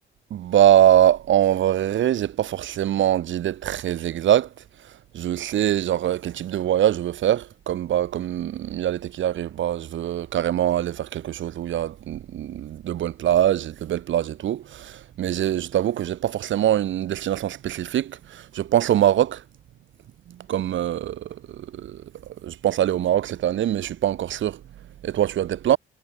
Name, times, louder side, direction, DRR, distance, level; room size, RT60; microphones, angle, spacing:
voice 1, 0.3-4.5 5.1-19.4 20.5-22.0 22.4-24.6 25.0-25.8, right 11 dB, 75° right, 6.4 m, -23 dB
cardioid pair, 90°, 20 cm